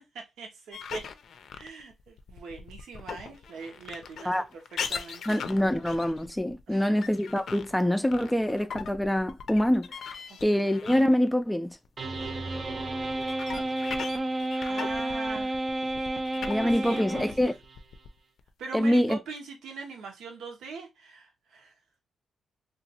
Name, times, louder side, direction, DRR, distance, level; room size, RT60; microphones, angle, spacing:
voice 1, 0.1-1.1 1.5-4.6 4.9-5.4 6.7-7.0 10.3-10.7 14.5-15.6 16.3-17.3 18.6-21.7, right 4 dB, 85° right, 0.9 m, -42 dB
sound 1, 0.7-11.4 11.7-18.5, left 6 dB, 75° left, 0.4 m, -40 dB
voice 2, 5.3-10.2 10.4-11.8 16.5-17.5 18.7-19.2, equal, 10° left, 0.3 m, -25 dB
sound 2, 12.0-17.8, right 1 dB, 45° right, 0.6 m, -31 dB
2.9 x 2.4 x 2.8 m
cardioid pair, 70°, 0 cm